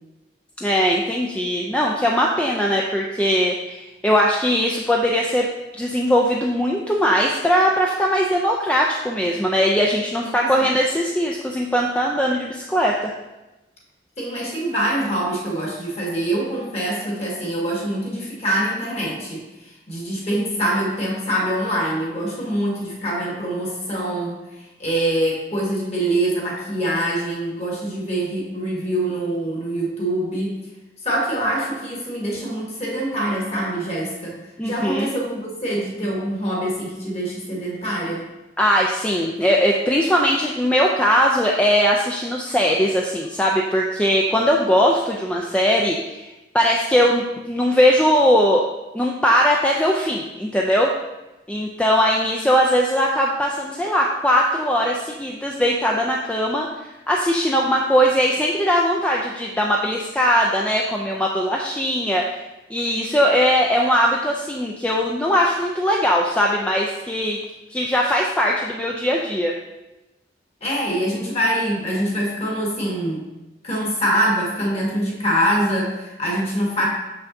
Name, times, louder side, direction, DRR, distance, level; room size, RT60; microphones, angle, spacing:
voice 1, 0.6-5.5 5.8-13.1 34.6-35.1 38.6-48.6 48.9-50.9 51.5-62.4 62.7-67.4 67.7-69.5, equal, 5° left, -2 dB, 0.3 m, -20 dB
voice 2, 10.2-10.6 14.2-24.4 24.8-30.6 31.0-34.4 34.6-38.2 70.6-73.2 73.6-76.9, right 1 dB, 35° left, -3 dB, 1.5 m, -24 dB
6.7 x 5.7 x 2.6 m, 1.0 s
head